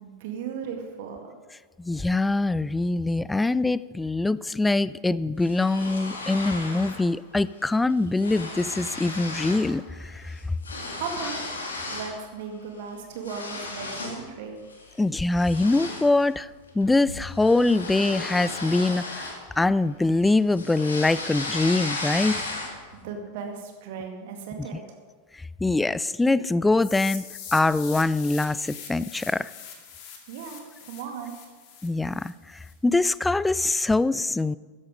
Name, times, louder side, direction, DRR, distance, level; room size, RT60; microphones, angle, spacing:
voice 1, 0.0-1.3 10.9-11.5 11.8-14.6 23.0-25.0 30.3-31.3, right 6 dB, 50° right, 4 dB, 2.1 m, -36 dB
voice 2, 1.8-10.4 15.0-16.5 16.7-19.3 19.6-22.4 25.6-27.2 27.5-29.5 31.8-32.3 32.8-34.6, left 2 dB, 10° left, 19 dB, 0.3 m, -23 dB
sound 1, 5.4-7.1 7.4-7.7 7.9-9.7 10.0-12.2 12.6-14.3 14.7-14.9 15.4-19.9 20.2-22.9, left 2 dB, 70° left, 2.4 m, -35 dB
sound 2, 26.8-32.7, left 7 dB, 45° left, 2.3 m, -42 dB
13.5 x 10.5 x 5.2 m, 1.5 s
figure-of-eight pair, 90°, 0 cm